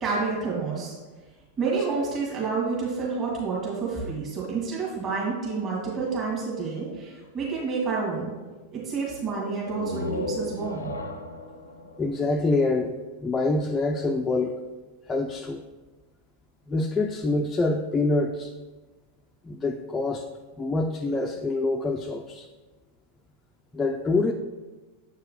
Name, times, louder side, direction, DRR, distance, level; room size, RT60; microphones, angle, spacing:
voice 1, 0.0-0.9 1.6-8.3 8.7-11.0, right 4 dB, 30° right, -5 dB, 2.0 m, -29 dB
sound 1, 9.6-13.3, left 2 dB, 75° left, 0.5 m, -35 dB
voice 2, 12.0-12.9 13.2-14.5 15.1-15.6 16.7-18.5 19.5-20.3 20.6-22.5 23.7-24.3, left 2 dB, 15° left, 2 dB, 0.3 m, -25 dB
7.6 x 4.5 x 3.7 m, 1.3 s
figure-of-eight pair, 90°, 0 cm